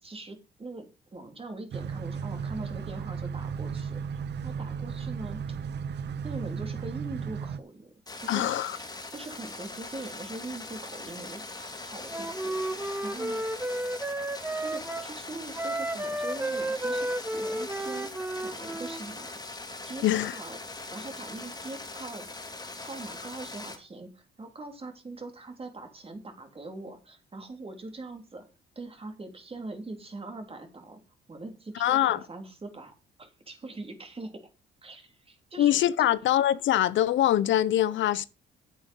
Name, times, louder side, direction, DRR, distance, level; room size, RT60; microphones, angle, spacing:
voice 1, 0.0-5.4 6.2-7.9 8.2-13.4 14.6-18.1 18.4-19.4 19.8-22.2 22.8-28.4 28.7-31.0 31.3-32.9 33.2-34.4 34.8-36.1, right 2 dB, 30° right, 3.3 m, -42 dB
sound 1, 1.7-7.6, right 6 dB, 60° right, 0.6 m, -35 dB
sound 2, 8.1-23.8, left 2 dB, 20° left, 3.3 m, -41 dB
voice 2, 8.3-8.8 20.0-20.4 31.8-32.2 35.6-38.3, left 12 dB, 75° left, 0.7 m, -23 dB
Wind instrument woodwind instrument, 12.1-15.1 15.5-19.0, right 1 dB, 10° right, 0.9 m, -32 dB
9.3 x 8.3 x 5.4 m
cardioid pair, 90°, 20 cm